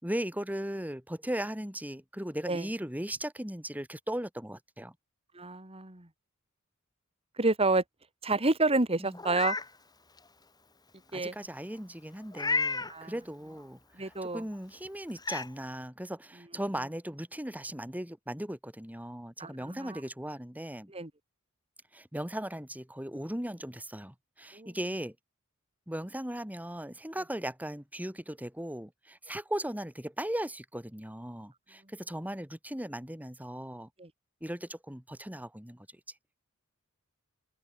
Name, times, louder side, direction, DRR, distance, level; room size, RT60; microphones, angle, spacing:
voice 1, 0.0-4.9 9.0-9.2 11.1-20.9 21.9-25.1 25.9-33.9 34.4-35.9, right 1 dB, 5° right, 4.3 m, -38 dB
voice 2, 5.3-6.1 7.4-7.8 8.2-9.6 11.1-11.3 12.9-13.1 14.0-14.4 19.4-20.0 20.9-21.1 24.5-24.7 34.0-34.1, right 2 dB, 25° right, 2.7 m, -29 dB
Meow, 9.1-9.7 10.2-10.3 12.3-12.9 14.5-14.6 15.2-15.5, left 3 dB, 20° left, 6.0 m, -31 dB
head